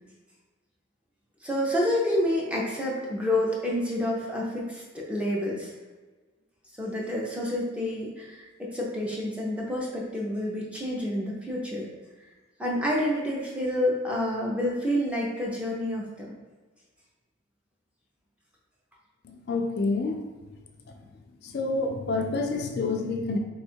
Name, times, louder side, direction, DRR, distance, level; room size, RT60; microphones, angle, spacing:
voice 1, 1.4-5.7 6.8-11.9 12.6-16.3, left 1 dB, 5° right, -3 dB, 0.6 m, -28 dB
voice 2, 19.2-20.3 21.4-23.4, left 3 dB, 50° left, 3 dB, 0.4 m, -28 dB
3.4 x 2.3 x 4.4 m, 1.3 s
head